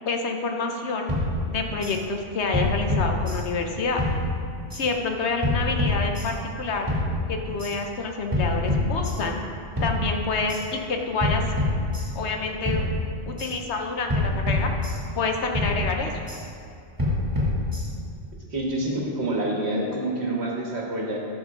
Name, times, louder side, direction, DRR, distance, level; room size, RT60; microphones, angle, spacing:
voice 1, 0.1-1.1 1.5-4.0 4.7-6.9 7.3-9.4 9.8-11.4 12.1-12.8 13.3-14.7 15.1-16.1, left 4 dB, 65° left, 3 dB, 1.0 m, -28 dB
sound 1, 1.1-2.0 2.5-3.7 4.0-4.8 5.4-6.5 6.9-7.7 8.3-9.5 9.8-10.6 11.2-12.4 12.7-13.5 14.1-15.3 15.5-16.4 17.0-18.1, left 2 dB, 15° right, 2.2 m, -26 dB
voice 2, 18.5-21.2, right 1 dB, 60° right, -2 dB, 1.7 m, -27 dB
13.0 x 6.4 x 3.7 m, 2.5 s
omnidirectional pair, 1.3 m